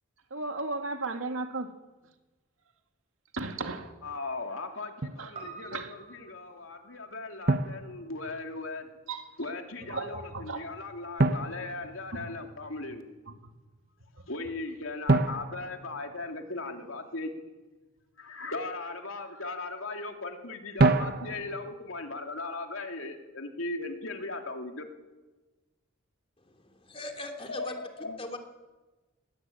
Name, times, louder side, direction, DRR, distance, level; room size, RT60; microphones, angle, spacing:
voice 1, 0.3-1.7 3.3-3.9 5.2-5.3 5.7-5.9 9.1-9.3 9.9-10.6, right 3 dB, 80° right, 2.3 m, -34 dB
voice 2, 4.0-8.9 9.4-13.1 14.3-17.3 18.2-24.9 27.5-28.2, left 3 dB, 75° left, 2.9 m, -38 dB
Drum, 5.0-5.3 7.5-8.6 11.2-12.6 15.1-16.8 20.8-21.7, right 2 dB, 45° right, 1.0 m, -28 dB
Piano, 5.3-9.9 10.1-10.2, right 4 dB, 30° right, 5.4 m, -50 dB
voice 3, 26.4-27.8 28.2-28.4, left 1 dB, 25° left, 3.1 m, -40 dB
22.5 x 20.0 x 8.6 m
head